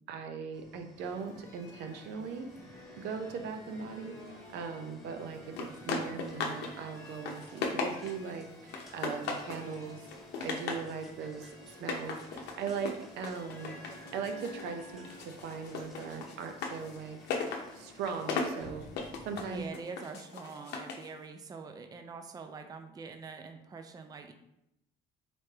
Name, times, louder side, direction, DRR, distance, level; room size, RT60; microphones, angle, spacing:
voice 1, 0.1-2.5 3.0-10.1 10.4-13.8 14.1-17.2 17.7-18.9 19.2-19.7, right 6 dB, 80° right, 5 dB, 0.6 m, -39 dB
sound 1, 0.5-19.7, left 2 dB, ahead, 1.4 m, -56 dB
sound 2, 1.0-18.4, left 1 dB, 15° left, 1.4 m, -52 dB
sound 3, 5.6-6.7 7.0-8.3 8.7-9.7 10.0-10.9 11.7-14.7 15.0-21.1, left 4 dB, 80° left, 0.7 m, -37 dB
voice 2, 19.4-24.3, right 4 dB, 20° right, 6 dB, 0.4 m, -44 dB
4.1 x 3.3 x 3.4 m, 0.84 s
cardioid pair, 110°, 17 cm